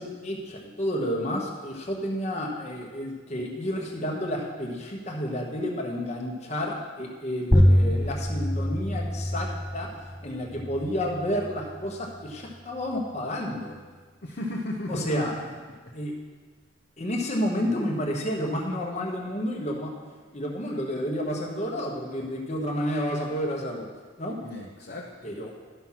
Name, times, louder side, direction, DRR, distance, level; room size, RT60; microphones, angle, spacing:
voice 1, 0.0-9.9 10.2-13.7 14.9-15.3 15.9-16.1 17.0-19.9 20.3-23.9 24.2-24.4 25.2-25.6, equal, 35° left, -1 dB, 1.2 m, -30 dB
sound 1, 7.5-12.6, equal, 5° left, 0.4 m, -25 dB
voice 2, 14.2-15.2 17.7-17.8 24.4-25.3, left 1 dB, 50° left, -2 dB, 0.9 m, -35 dB
11.5 x 6.0 x 5.8 m, 1.4 s
head